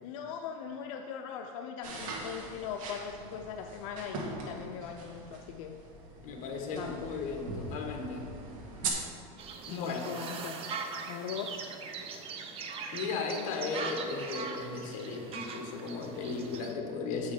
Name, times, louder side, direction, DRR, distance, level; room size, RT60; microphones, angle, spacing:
voice 1, 0.0-5.8 6.7-7.1 9.7-10.6 11.1-11.7, left 7 dB, 75° left, 4 dB, 0.5 m, -40 dB
sound 1, 1.8-8.9, right 4 dB, 90° right, 1.4 m, -41 dB
voice 2, 6.2-8.3 9.7-10.0 12.9-17.3, left 4 dB, 45° left, 2 dB, 1.3 m, -36 dB
sound 2, 9.4-16.7, right 5 dB, 35° right, 0.7 m, -41 dB
8.0 x 5.6 x 4.9 m, 2.7 s
supercardioid pair, 145°, 17 cm